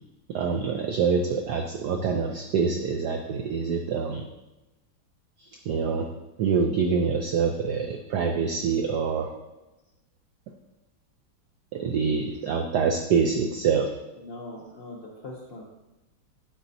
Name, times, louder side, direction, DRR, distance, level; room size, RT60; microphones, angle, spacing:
voice 1, 0.3-4.2 5.4-6.1 6.4-9.3 11.7-13.9, right 5 dB, 75° right, 3 dB, 0.9 m, -25 dB
voice 2, 14.2-15.8, left 2 dB, 65° left, -3 dB, 0.5 m, -41 dB
8.7 x 5.1 x 2.7 m, 1.0 s
omnidirectional pair, 2.2 m